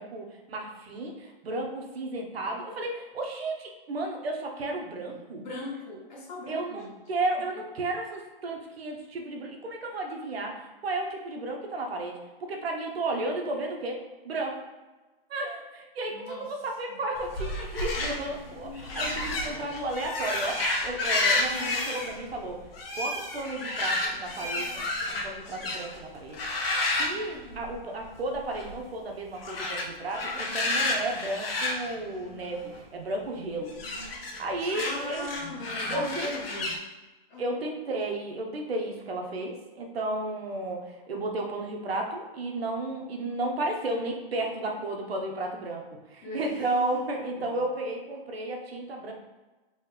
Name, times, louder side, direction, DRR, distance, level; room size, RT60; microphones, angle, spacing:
voice 1, 0.0-5.4 6.5-14.0 14.2-14.6 15.3-22.6 23.0-26.4 27.0-33.7 34.4-35.3 35.9-36.3 37.4-45.8 46.1-49.1, right 2 dB, 90° right, 2 dB, 0.9 m, -33 dB
voice 2, 5.1-7.0 16.1-16.5 34.7-36.8 37.3-37.6 46.2-46.4 47.4-47.6, left 2 dB, 50° left, -3 dB, 1.3 m, -39 dB
sound 1, 17.2-26.0 26.3-28.0 28.3-28.7 29.4-32.8 33.7-36.8, left 2 dB, 75° left, 0.9 m, -31 dB
3.2 x 3.0 x 3.3 m, 1.2 s
hypercardioid pair, 140°, 30 cm